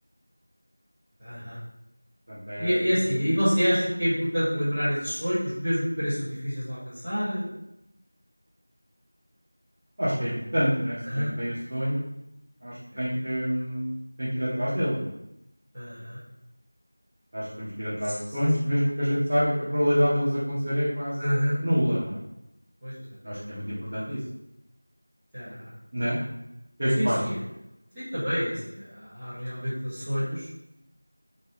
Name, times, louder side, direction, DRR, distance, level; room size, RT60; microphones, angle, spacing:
voice 1, 1.2-1.6 2.6-7.5 11.0-11.3 12.9-13.2 15.7-16.2 18.0-18.2 21.2-21.6 22.8-23.0 23.3-23.4 25.3-25.7 27.0-27.4 27.9-30.5, equal, ahead, -25 dB, 2.1 m, -28 dB
voice 2, 2.3-2.8 10.0-12.0 12.6-13.9 14.2-15.1 17.3-22.2 23.2-24.2 25.9-26.2 26.8-27.2, equal, 25° right, -13 dB, 1.7 m, -27 dB
6.4 x 3.8 x 4.0 m, 0.85 s
figure-of-eight pair, 180°, 0 cm